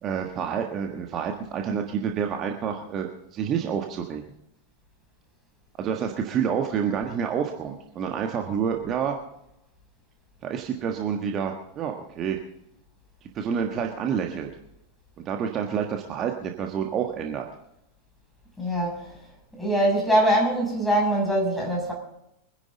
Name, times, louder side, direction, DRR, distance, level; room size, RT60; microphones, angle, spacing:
voice 1, 0.0-4.2 5.8-9.1 10.4-12.4 13.2-14.5 15.2-17.5, right 7 dB, 30° right, 3 dB, 1.4 m, -28 dB
voice 2, 18.6-19.2 19.6-21.9, right 1 dB, 5° left, -1 dB, 6.8 m, -23 dB
24.5 x 11.0 x 4.0 m, 0.82 s
figure-of-eight pair, 90°, 0 cm